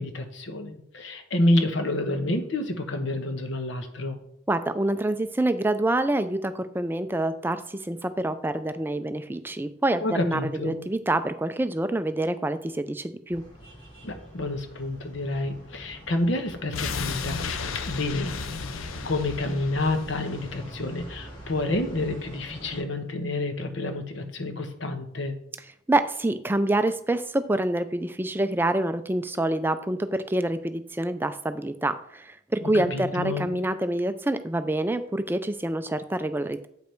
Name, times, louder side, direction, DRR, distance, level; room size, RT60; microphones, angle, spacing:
voice 1, 0.0-4.2 10.0-10.8 14.0-17.5 17.8-25.3 32.6-33.5, left 2 dB, 65° left, 6 dB, 1.1 m, -29 dB
voice 2, 4.5-13.4 25.9-36.7, right 1 dB, 10° right, 10 dB, 0.4 m, -26 dB
sound 1, 13.3-22.8, equal, 35° left, 2.4 m, -44 dB
sound 2, 16.7-21.7 22.0-22.1, left 5 dB, 90° left, 0.6 m, -34 dB
8.0 x 5.3 x 4.5 m, 0.73 s
head